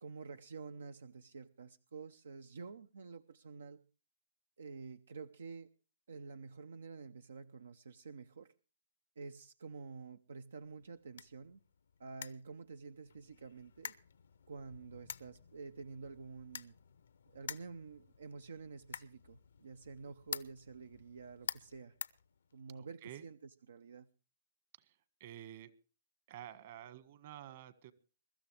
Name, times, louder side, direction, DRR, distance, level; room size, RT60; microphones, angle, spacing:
voice 1, 0.0-3.8 4.6-5.7 6.1-8.5 9.2-11.6 12.0-13.9 14.5-16.7 17.3-21.9 22.5-24.1, right 4 dB, 80° right, 11 dB, 0.7 m, -49 dB
sound 1, 10.6-22.9, left 7 dB, 75° left, 0.8 m, -50 dB
voice 2, 22.7-23.2 24.8-25.7 26.3-27.9, right 11 dB, 50° right, 13 dB, 1.6 m, -51 dB
23.0 x 13.0 x 3.3 m, 0.35 s
hypercardioid pair, 135°, 0 cm